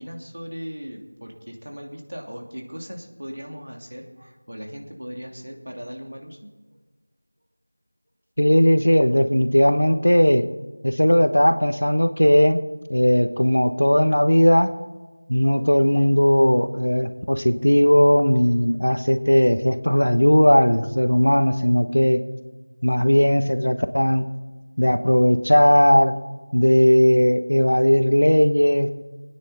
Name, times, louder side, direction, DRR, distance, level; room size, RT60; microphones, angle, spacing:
voice 1, 0.0-6.4 22.8-22.9, equal, 75° right, 1 dB, 2.8 m, -38 dB
voice 2, 8.4-10.5 10.8-12.6 12.9-14.7 15.3-22.2 22.8-24.3 24.8-26.1 26.5-28.9, equal, 75° left, 10 dB, 1.1 m, -17 dB
22.0 x 9.7 x 4.2 m, 1.3 s
figure-of-eight pair, 175°, 0 cm